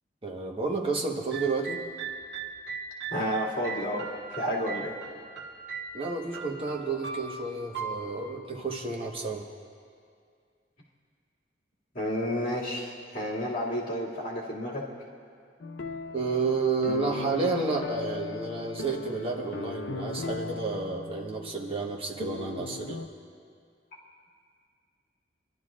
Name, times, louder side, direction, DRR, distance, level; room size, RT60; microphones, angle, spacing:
voice 1, 0.2-1.8 5.9-9.4 16.1-23.0, right 4 dB, 30° right, 0 dB, 1.2 m, -31 dB
sound 1, 1.3-9.3, right 5 dB, 70° right, 1.2 m, -39 dB
voice 2, 3.1-4.9 11.9-14.8, equal, 50° left, -6 dB, 2.4 m, -31 dB
sound 2, 15.6-23.1, left 4 dB, 70° left, 0.6 m, -38 dB
27.0 x 12.0 x 2.5 m, 2.2 s
head